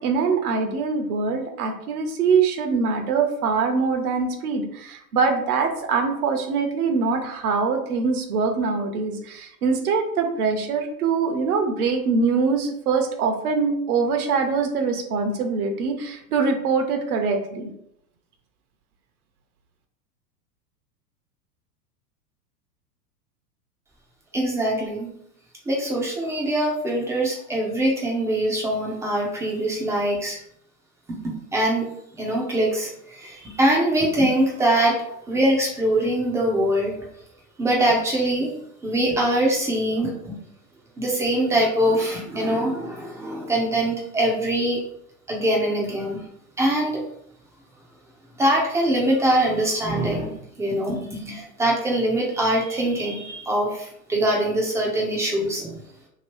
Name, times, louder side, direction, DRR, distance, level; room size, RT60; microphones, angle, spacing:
voice 1, 0.0-17.7, right 5 dB, 65° right, 5 dB, 0.8 m, -23 dB
voice 2, 24.3-25.1 25.7-30.4 31.1-31.9 32.1-36.9 37.6-38.5 38.8-40.4 41.0-44.8 45.3-46.2 46.6-47.0 48.4-55.8, right 1 dB, 5° right, -2 dB, 0.4 m, -23 dB
3.0 x 2.7 x 3.0 m, 0.73 s
hypercardioid pair, 95°, 48 cm